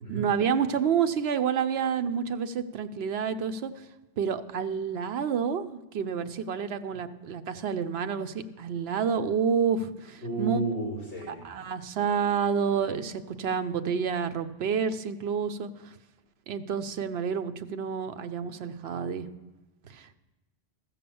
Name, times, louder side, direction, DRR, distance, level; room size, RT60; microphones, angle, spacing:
voice 1, 0.1-3.9 4.2-10.6 11.3-15.9 16.5-19.3 19.9-20.1, right 7 dB, 70° right, 10 dB, 0.9 m, -29 dB
voice 2, 10.2-11.4, right 3 dB, 45° right, -5 dB, 3.4 m, -32 dB
14.5 x 5.8 x 6.9 m, 1.1 s
omnidirectional pair, 1.1 m